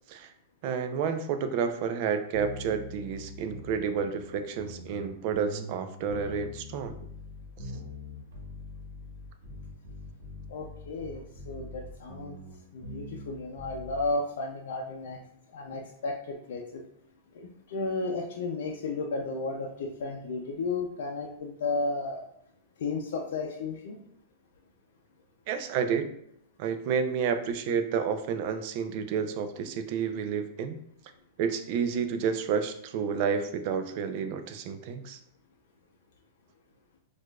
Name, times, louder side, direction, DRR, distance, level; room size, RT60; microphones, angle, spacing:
voice 1, 0.6-6.9 25.5-26.1 26.6-30.8 31.4-35.2, right 6 dB, 55° right, 8 dB, 0.4 m, -30 dB
sound 1, 2.3-14.1, left 1 dB, 80° right, 1.1 m, -43 dB
voice 2, 10.5-12.4 12.7-15.2 15.5-16.8 17.3-22.2 22.8-24.0, left 3 dB, 75° left, 0 dB, 0.5 m, -33 dB
4.3 x 2.4 x 2.3 m, 0.71 s
hypercardioid pair, 125°, 0 cm